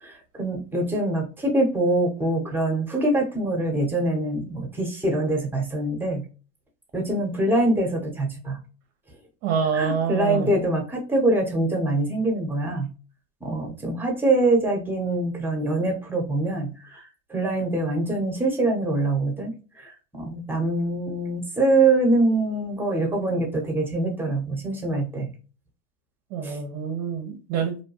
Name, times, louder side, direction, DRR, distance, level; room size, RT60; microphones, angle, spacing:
voice 1, 0.0-6.2 6.9-8.6 9.7-12.9 13.4-17.0 17.3-25.3 26.4-26.6, right 2 dB, 5° right, 0.8 m, -24 dB
voice 2, 9.4-10.5 26.3-27.8, right 7 dB, 45° right, 0.6 m, -26 dB
2.7 x 2.1 x 2.8 m
hypercardioid pair, 110°, 37 cm